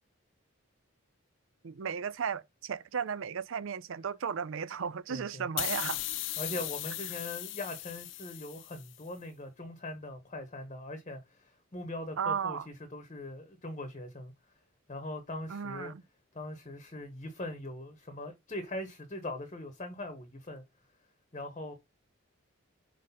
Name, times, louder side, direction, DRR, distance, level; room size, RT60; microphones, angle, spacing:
voice 1, 1.6-6.0 12.2-12.7 15.5-16.0, right 6 dB, 65° right, 0.4 m, -35 dB
voice 2, 5.1-5.5 6.4-14.3 14.9-15.9 16.3-20.6 21.3-21.7, left 1 dB, 30° left, 1.0 m, -41 dB
sound 1, 5.6-9.0, left 15 dB, 60° left, 0.5 m, -37 dB
5.0 x 3.9 x 5.5 m
head